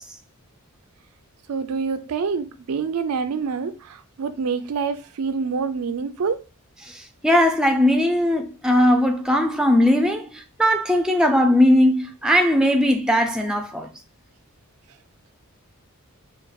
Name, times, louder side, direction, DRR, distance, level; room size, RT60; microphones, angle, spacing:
voice 1, 1.5-6.4, right 5 dB, 75° right, 0.4 m, -26 dB
voice 2, 6.8-13.9, left 1 dB, 5° right, 0.3 m, -19 dB
5.3 x 2.3 x 2.3 m
head